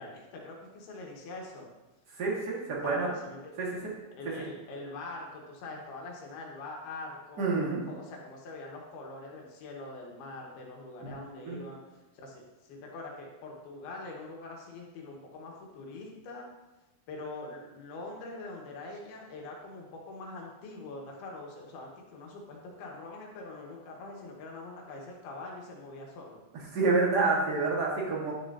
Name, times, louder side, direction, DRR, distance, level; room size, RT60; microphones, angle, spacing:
voice 1, 0.0-1.7 2.8-3.6 4.2-11.8 12.1-16.5 17.1-26.4, left 2 dB, 85° left, 0 dB, 3.3 m, -43 dB
voice 2, 2.2-3.1 3.6-3.7 7.4-7.8 11.0-11.1 11.4-11.6 26.7-28.3, right 3 dB, 45° right, -4 dB, 1.4 m, -28 dB
11.5 x 6.9 x 2.8 m, 1.1 s
omnidirectional pair, 4.4 m